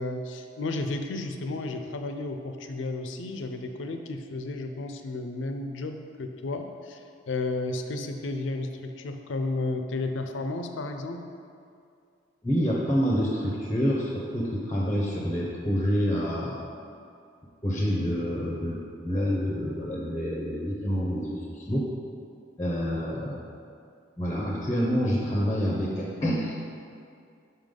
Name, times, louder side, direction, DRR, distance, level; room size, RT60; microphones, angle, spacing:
voice 1, 0.0-11.2, left 2 dB, 75° left, 6 dB, 0.5 m, -33 dB
voice 2, 12.4-16.7 17.6-18.8 19.0-21.9 22.6-23.5 24.2-26.6, equal, 15° left, -3 dB, 0.6 m, -27 dB
5.6 x 5.2 x 3.7 m, 2.4 s
head